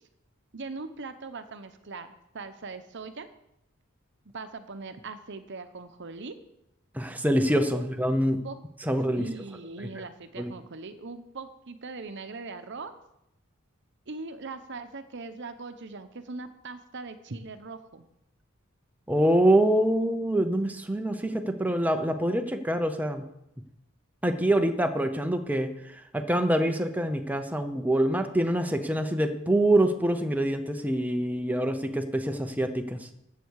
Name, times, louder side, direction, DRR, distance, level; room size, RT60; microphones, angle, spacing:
voice 1, 0.5-3.3 4.3-6.4 7.7-7.8 8.4-8.6 9.2-12.9 14.1-18.1, right 3 dB, 60° right, 10 dB, 0.9 m, -40 dB
voice 2, 6.9-8.4 8.8-9.2 10.4-10.5 19.1-23.2 24.2-33.0, right 1 dB, 10° right, 6 dB, 0.8 m, -25 dB
14.0 x 8.2 x 4.7 m, 0.82 s
head